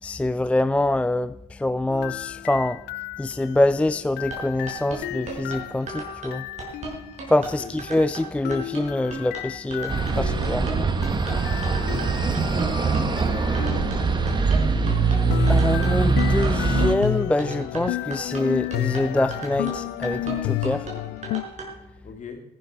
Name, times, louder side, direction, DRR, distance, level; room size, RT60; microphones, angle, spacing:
voice 1, 0.0-2.8 3.2-6.5 7.3-10.7 11.3-12.8 15.5-20.9, left 1 dB, 5° left, 0.3 m, -25 dB
sound 1, 1.9-7.2 8.4-14.2 15.3-21.4, left 17 dB, 80° left, 0.5 m, -32 dB
sound 2, 4.2-21.7, right 3 dB, 45° right, 5.5 m, -36 dB
sound 3, 9.9-16.9, right 4 dB, 25° right, 1.3 m, -22 dB
voice 2, 11.2-12.1 13.0-15.1 22.0-22.4, left 5 dB, 45° left, 2.9 m, -42 dB
14.0 x 11.5 x 4.7 m
cardioid pair, 110°, 17 cm